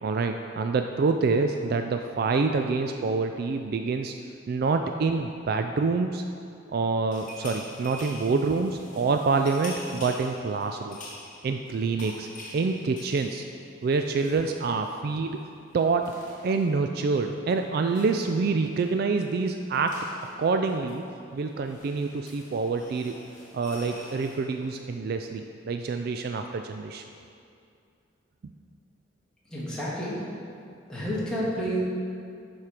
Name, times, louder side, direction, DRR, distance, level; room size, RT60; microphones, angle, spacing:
voice 1, 0.0-4.1 4.5-6.2 6.7-11.0 11.4-12.3 12.5-13.4 13.8-15.4 15.7-16.1 16.4-20.0 20.4-21.0 21.3-23.2 23.5-27.0, right 4 dB, 50° right, 6 dB, 0.3 m, -26 dB
sound 1, 7.1-15.0 15.2-15.4 15.7-24.8, left 1 dB, 40° left, 1.3 m, -47 dB
voice 2, 29.5-30.2 30.9-31.8, equal, 5° left, -9 dB, 1.9 m, -30 dB
10.5 x 4.4 x 4.9 m, 2.4 s
head